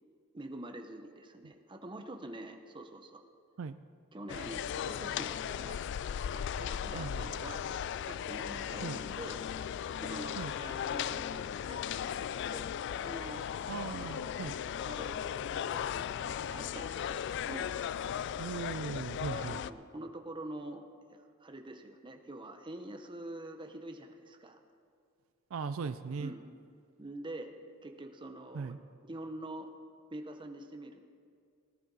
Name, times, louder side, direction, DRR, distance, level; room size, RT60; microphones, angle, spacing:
voice 1, 0.3-3.2 4.1-5.8 6.3-7.7 8.1-9.4 10.0-13.4 13.9-14.5 14.9-17.7 19.3-20.8 21.1-24.6 26.2-26.5 27.0-27.6 27.8-29.7 30.1-31.0, right 1 dB, 25° right, 5 dB, 0.9 m, -46 dB
sound 1, 4.3-19.7, left 8 dB, 60° left, 0.3 m, -37 dB
voice 2, 6.9-7.3 8.8-9.0 10.4-10.5 13.7-14.5 18.4-19.6 25.5-26.3 28.5-28.8, right 5 dB, 75° right, 12 dB, 0.4 m, -38 dB
17.5 x 12.0 x 4.1 m, 2.2 s
head